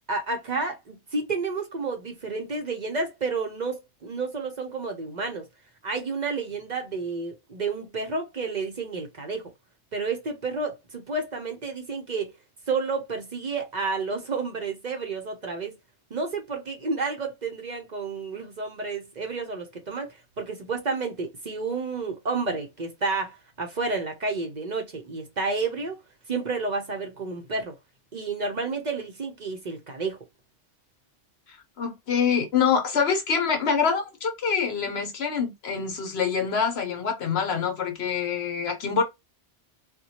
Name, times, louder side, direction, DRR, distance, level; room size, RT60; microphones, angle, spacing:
voice 1, 0.1-5.4 5.8-9.5 9.9-12.3 12.7-15.8 16.1-26.0 26.3-27.7 28.1-30.2, right 4 dB, 45° right, 0.7 m, -30 dB
voice 2, 31.8-39.0, left 6 dB, 70° left, 1.1 m, -25 dB
4.2 x 2.2 x 2.8 m
omnidirectional pair, 1.2 m